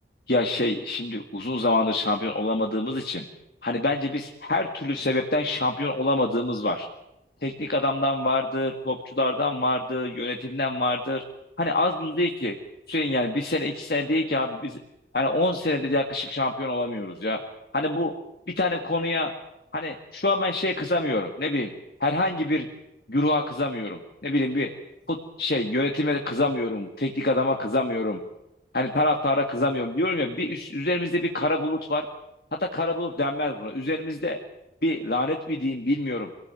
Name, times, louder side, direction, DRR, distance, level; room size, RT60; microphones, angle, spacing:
voice 1, 0.3-3.3 3.6-6.9 7.4-11.2 11.6-12.5 12.9-14.8 15.1-17.4 17.7-18.1 18.6-19.3 19.7-21.7 22.0-22.7 23.1-24.7 25.1-28.2 28.7-32.1 32.6-34.4 34.8-36.3, left 2 dB, 60° left, 3 dB, 1.9 m, -26 dB
25.5 x 18.0 x 9.1 m, 0.89 s
head